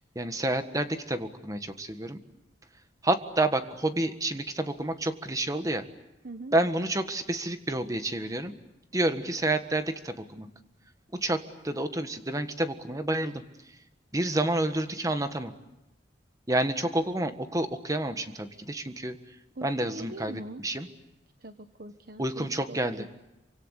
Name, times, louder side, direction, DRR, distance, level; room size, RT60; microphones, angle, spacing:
voice 1, 0.1-2.2 3.0-5.8 6.5-8.5 8.9-10.5 11.1-13.4 13.7-13.8 14.1-15.5 16.5-19.2 19.6-20.9 22.2-23.1, right 1 dB, 20° right, 9 dB, 1.6 m, -29 dB
voice 2, 6.2-6.5 19.6-20.6 21.4-23.1, right 2 dB, 55° right, 8 dB, 1.2 m, -42 dB
27.5 x 25.5 x 8.2 m, 0.94 s
head